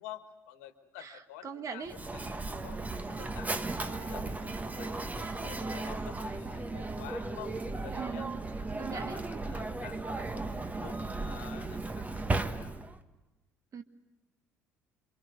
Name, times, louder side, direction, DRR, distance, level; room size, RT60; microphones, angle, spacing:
voice 1, 0.0-1.8 2.1-7.6 7.8-8.3 8.6-12.8, left 12 dB, 70° left, 10 dB, 1.7 m, -50 dB
voice 2, 1.0-2.0 7.9-8.4 8.7-9.2 13.7-13.8, right 6 dB, 40° right, 8 dB, 1.8 m, -41 dB
Mechanisms, 1.9-13.0, right 2 dB, 20° right, 1.5 m, -36 dB
27.5 x 25.5 x 8.0 m, 1.1 s
figure-of-eight pair, 55°, 8 cm